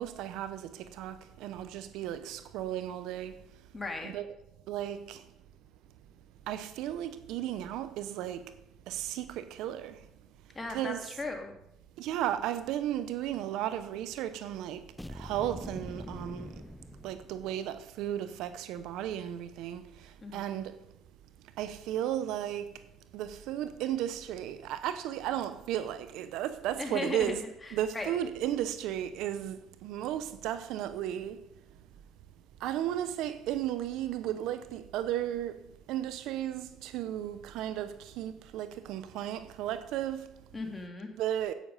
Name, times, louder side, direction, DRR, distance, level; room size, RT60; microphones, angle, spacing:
voice 1, 0.0-3.4 4.0-4.3 4.7-5.2 6.5-8.5 8.9-10.0 10.7-11.0 12.0-14.8 15.1-16.6 17.0-19.9 20.3-20.8 21.6-22.7 23.1-27.4 27.7-31.4 32.6-35.5 35.9-40.3 41.2-41.5, right 11 dB, 75° right, 0.7 m, -34 dB
voice 2, 3.7-4.1 10.5-11.5 20.2-20.6 26.8-28.2 40.5-41.1, left 2 dB, 20° left, 2.2 m, -37 dB
sound 1, 15.0-17.7, left 1 dB, 5° left, 0.4 m, -44 dB
10.0 x 8.6 x 5.4 m
supercardioid pair, 90°, 0 cm